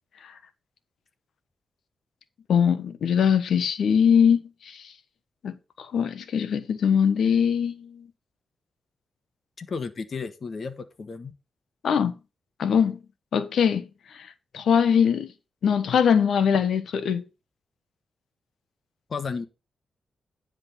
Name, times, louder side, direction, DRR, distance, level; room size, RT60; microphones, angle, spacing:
voice 1, 2.5-4.8 5.4-8.1 11.8-12.1 12.6-13.0 13.3-13.9 14.1-14.3 14.5-15.3 15.6-17.2, left 7 dB, 75° left, 1.1 m, -22 dB
voice 2, 9.6-11.3 19.1-19.5, left 5 dB, 55° left, 1.3 m, -33 dB
9.9 x 3.8 x 7.0 m
cardioid pair, 60°, 0 cm